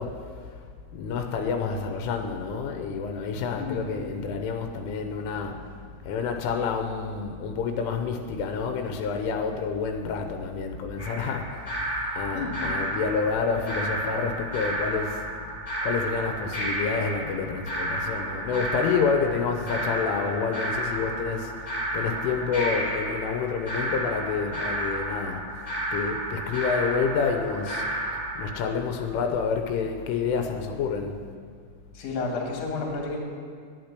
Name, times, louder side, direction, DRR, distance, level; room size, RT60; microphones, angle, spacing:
voice 1, 0.0-11.7 12.1-15.2 15.8-25.4 25.9-27.9 28.1-31.2, left 5 dB, 85° left, 5 dB, 3.2 m, -29 dB
sound 1, 11.0-28.5, right 1 dB, 5° right, 2.7 m, -32 dB
voice 2, 12.3-12.8 31.9-33.2, left 3 dB, 45° left, -1 dB, 2.3 m, -31 dB
11.0 x 8.9 x 8.2 m, 2.1 s
omnidirectional pair, 5.8 m